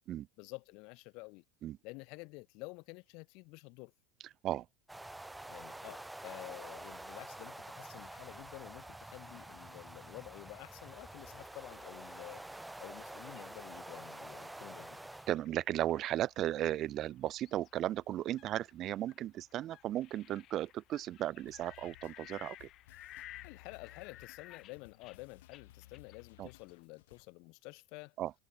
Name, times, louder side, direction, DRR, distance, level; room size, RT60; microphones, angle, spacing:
voice 1, 0.4-1.4 1.8-3.9 5.5-15.0 23.4-28.1, left 28 dB, 55° left, 1.7 m, -50 dB
sound 1, 4.9-15.3, right 1 dB, 5° right, 1.2 m, -48 dB
sound 2, 10.1-26.8, left 14 dB, 40° left, 3.9 m, -58 dB
voice 2, 15.3-22.7 26.4-26.5 28.2-28.3, right 13 dB, 35° right, 0.5 m, -35 dB
sound 3, 21.4-27.3, left 16 dB, 85° left, 4.2 m, -60 dB
supercardioid pair, 145°, 0 cm